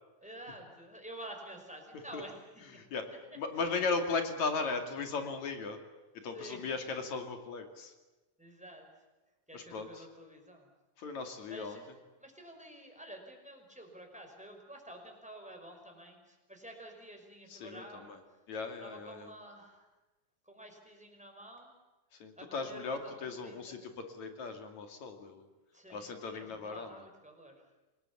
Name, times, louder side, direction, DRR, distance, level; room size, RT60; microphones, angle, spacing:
voice 1, 0.2-2.4 2.7-2.8 3.1-3.4 6.2-6.6 8.4-8.9 9.5-10.7 11.5-11.8 12.2-18.4 18.8-19.9 20.4-21.7 22.4-23.1 23.4-23.8 25.7-27.6, right 1 dB, ahead, 2 dB, 5.1 m, -50 dB
voice 2, 2.8-3.1 3.4-5.8 6.2-7.9 9.5-10.1 11.0-11.8 17.5-18.2 18.5-19.3 22.1-25.5 25.9-26.9, left 4 dB, 65° left, 6 dB, 3.7 m, -37 dB
28.0 x 20.0 x 8.6 m, 1.1 s
omnidirectional pair, 3.6 m